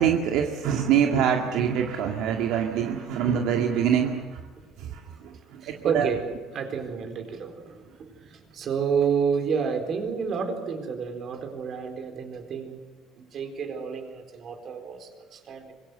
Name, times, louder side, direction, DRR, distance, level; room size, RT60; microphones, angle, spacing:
voice 1, 0.0-4.4 4.8-6.1, right 8 dB, 70° right, 3 dB, 2.1 m, -25 dB
voice 2, 4.6-5.1 5.6-6.2 6.5-12.8 13.2-15.7, right 6 dB, 40° right, 6 dB, 4.3 m, -30 dB
25.0 x 23.0 x 8.0 m, 1.3 s
cardioid pair, 155°, 0 cm